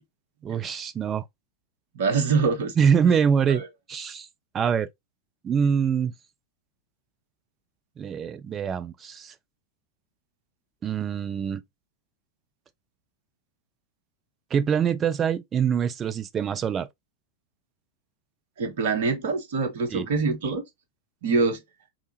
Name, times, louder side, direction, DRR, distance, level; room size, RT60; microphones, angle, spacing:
voice 1, 0.4-1.2 2.8-3.6 3.9-4.3 4.5-4.9 5.4-6.1 8.0-9.3 10.8-11.6 14.5-16.9 19.9-20.1, right 7 dB, 25° right, 0.4 m, -24 dB
voice 2, 2.0-2.7 3.5-3.6 18.6-20.6 21.2-21.6, right 4 dB, 55° right, 0.9 m, -24 dB
3.4 x 2.4 x 3.0 m
figure-of-eight pair, 90°, 0 cm